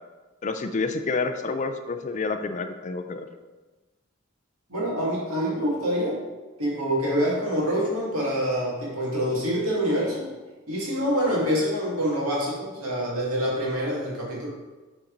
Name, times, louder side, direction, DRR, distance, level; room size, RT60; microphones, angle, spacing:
voice 1, 0.4-3.3, left 4 dB, 35° left, 7 dB, 0.4 m, -28 dB
voice 2, 4.7-6.2 6.6-10.3 10.7-14.5, equal, 90° right, -4 dB, 2.0 m, -26 dB
7.1 x 4.1 x 3.9 m, 1.2 s
head